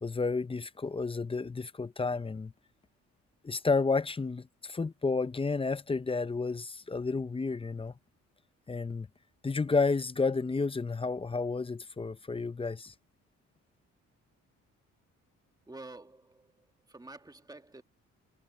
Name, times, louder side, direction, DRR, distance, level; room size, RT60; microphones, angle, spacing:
voice 1, 0.0-2.5 3.4-7.9 8.7-9.1 9.4-12.9, left 4 dB, 20° left, 0.7 m, -31 dB
voice 2, 15.7-17.8, right 2 dB, 15° right, 1.5 m, -49 dB
cardioid pair, 90°, 30 cm